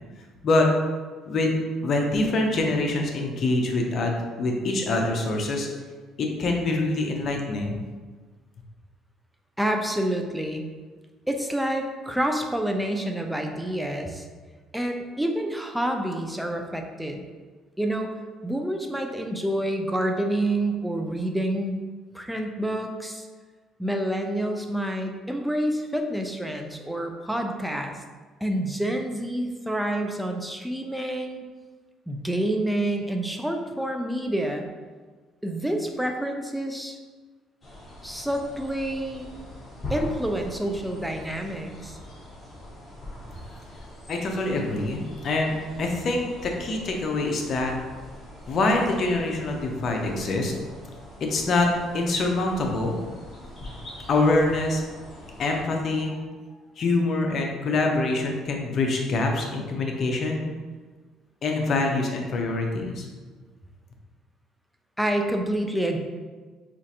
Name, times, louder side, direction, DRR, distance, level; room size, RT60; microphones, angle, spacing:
voice 1, 1.8-5.7 6.2-7.8 44.1-47.7 48.5-50.5 51.3-53.0 54.1-54.8 55.4-56.2 56.8-60.4 61.4-63.1, left 2 dB, 50° left, 1 dB, 0.7 m, -25 dB
voice 2, 9.6-10.7 11.3-14.3 14.7-17.2 17.8-18.1 18.4-21.8 22.1-23.3 23.8-27.9 28.4-31.5 32.1-34.6 35.4-37.0 38.0-39.3 39.9-42.0 65.0-66.0, right 1 dB, ahead, 3 dB, 0.4 m, -28 dB
sound 1, 37.6-55.6, left 1 dB, 30° left, 1.2 m, -42 dB
4.4 x 2.5 x 2.8 m, 1.4 s
cardioid pair, 95°, 0 cm